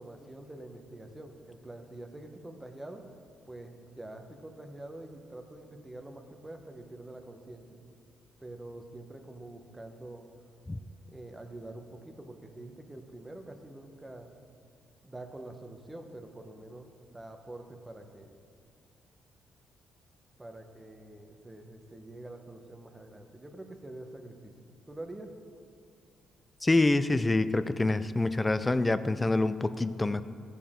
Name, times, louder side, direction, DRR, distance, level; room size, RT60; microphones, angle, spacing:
voice 1, 0.0-3.0 3.5-7.8 8.4-10.3 11.1-14.3 15.0-16.9 17.1-18.3 20.4-24.5 24.9-25.3, right 1 dB, 15° right, 5 dB, 1.0 m, -46 dB
voice 2, 26.6-30.2, left 2 dB, 20° left, 14 dB, 0.4 m, -26 dB
14.5 x 6.9 x 3.7 m, 2.3 s
cardioid pair, 90°, 0 cm